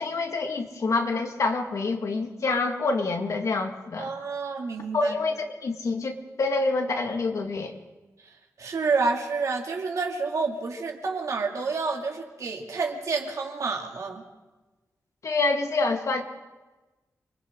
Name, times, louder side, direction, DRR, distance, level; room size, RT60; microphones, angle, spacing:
voice 1, 0.0-4.1 4.9-7.7 15.2-16.2, left 3 dB, 60° left, 4 dB, 1.9 m, -27 dB
voice 2, 4.0-5.1 8.6-14.2, right 4 dB, 65° right, 1 dB, 2.7 m, -29 dB
29.5 x 23.0 x 3.8 m, 1.2 s
wide cardioid pair, 160°, 6 cm